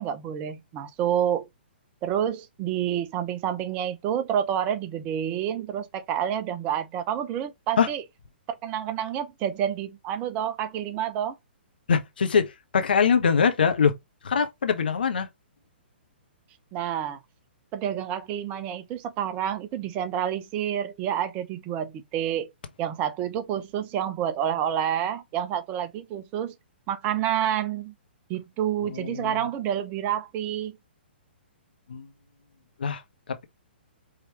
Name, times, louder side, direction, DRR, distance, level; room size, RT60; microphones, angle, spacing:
voice 1, 0.0-1.5 2.0-8.0 8.6-11.4 16.7-17.2 17.7-22.5 22.8-26.5 26.9-27.9 28.3-30.8, right 10 dB, 25° right, 0.6 m, -28 dB
voice 2, 11.9-13.9 14.2-15.3 28.8-29.4 31.9-32.1 32.8-33.0, left 6 dB, 60° left, 0.9 m, -23 dB
4.9 x 3.1 x 3.0 m
figure-of-eight pair, 120°, 6 cm